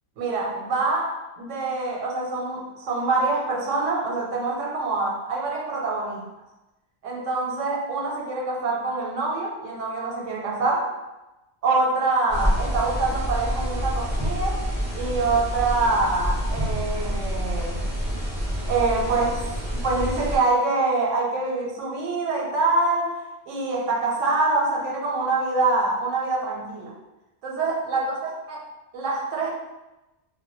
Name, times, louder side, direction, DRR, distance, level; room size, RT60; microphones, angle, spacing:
voice 1, 0.2-6.2 7.0-10.9 11.6-14.6 14.9-17.8 18.7-19.4 19.8-26.9 27.4-28.6 28.9-29.5, right 3 dB, 85° right, -2 dB, 0.9 m, -25 dB
sound 1, 12.3-20.4, equal, 10° right, 0.6 m, -27 dB
2.1 x 2.1 x 3.0 m, 1.0 s
omnidirectional pair, 1.3 m